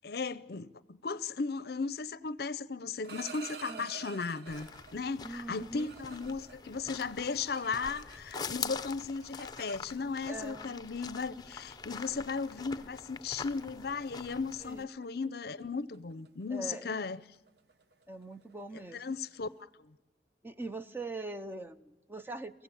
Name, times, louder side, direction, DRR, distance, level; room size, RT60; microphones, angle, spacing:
voice 1, 0.0-17.2 18.9-19.5 19.8-19.9, left 4 dB, 60° left, 0.6 m, -36 dB
sound 1, 2.8-5.0 5.5-8.5 8.8-10.3 11.2-11.4 11.7-12.0 12.5-12.8 13.1-13.3 13.6-13.9 14.1-19.5, right 6 dB, 65° right, 1.0 m, -51 dB
sound 2, 4.5-14.8, left 5 dB, 20° left, 0.7 m, -44 dB
voice 2, 5.2-5.9 10.3-10.8 14.6-14.9 16.5-17.0 18.1-19.0 20.4-22.6, right 2 dB, 10° right, 0.7 m, -42 dB
24.0 x 15.5 x 8.3 m
head